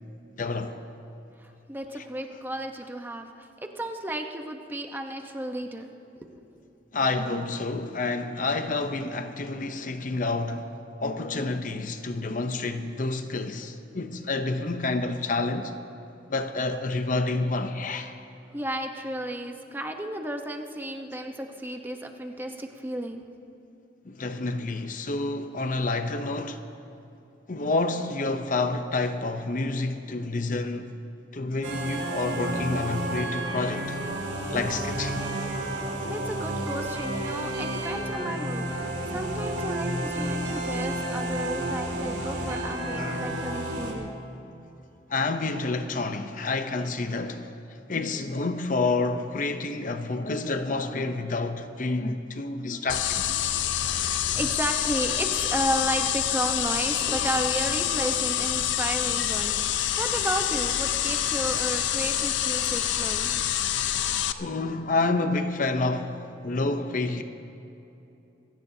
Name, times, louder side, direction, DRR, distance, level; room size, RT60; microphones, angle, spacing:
voice 1, 0.4-0.8 2.0-2.1 6.9-15.7 16.3-18.2 24.0-26.6 27.5-31.0 31.3-34.0 34.5-35.3 43.0-43.6 45.1-47.5 47.9-53.4 63.9-67.2, left 3 dB, 45° left, 0.7 m, -29 dB
voice 2, 1.4-5.9 6.2-6.4 18.5-23.3 36.0-44.1 53.8-63.4, right 1 dB, 10° right, 0.9 m, -33 dB
sound 1, 31.6-43.9, right 1 dB, 75° right, 3.0 m, -31 dB
sound 2, 52.9-64.3, left 10 dB, 85° left, 0.5 m, -27 dB
26.0 x 17.0 x 2.8 m
head